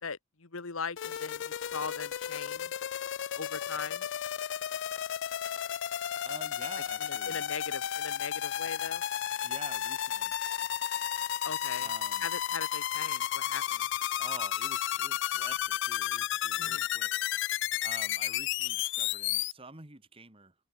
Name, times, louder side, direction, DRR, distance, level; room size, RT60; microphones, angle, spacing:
voice 1, 0.0-2.7 3.4-4.1 7.0-9.0 11.4-11.9 12.2-13.9 16.6-16.8, left 5 dB, 75° left, 1.4 m, -40 dB
sound 1, 1.0-19.5, left 11 dB, 60° left, 0.4 m, -33 dB
voice 2, 6.2-7.4 9.4-10.3 11.8-12.3 14.2-17.1 17.8-20.5, right 3 dB, 25° right, 2.3 m, -48 dB
head